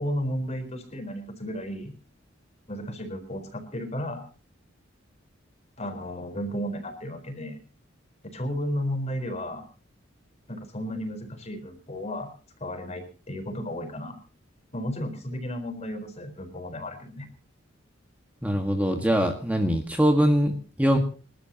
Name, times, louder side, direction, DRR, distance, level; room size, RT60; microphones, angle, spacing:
voice 1, 0.0-1.9 2.7-4.2 5.8-7.6 8.3-9.6 10.5-12.3 12.6-14.2 14.7-17.3, equal, 35° left, 7 dB, 4.3 m, -33 dB
voice 2, 18.4-21.0, equal, 10° right, 3 dB, 1.7 m, -23 dB
28.0 x 12.5 x 2.9 m, 0.38 s
head